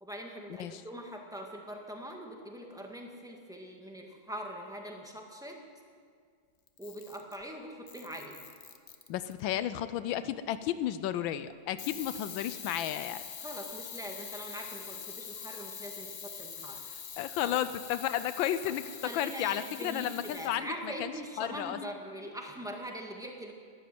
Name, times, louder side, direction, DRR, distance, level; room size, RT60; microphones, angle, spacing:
voice 1, 0.0-5.6 6.8-8.4 13.4-16.8 17.4-17.5 18.6-18.7 19.0-23.5, equal, ahead, 1 dB, 1.7 m, -42 dB
Camera, 6.7-7.4 7.9-9.4 11.8-20.5, left 7 dB, 50° left, 0.8 m, -44 dB
voice 2, 9.1-13.2 17.2-18.8 19.1-21.1 21.4-21.8, left 11 dB, 80° left, 13 dB, 1.3 m, -33 dB
12.5 x 12.0 x 9.4 m, 2.1 s
omnidirectional pair, 2.1 m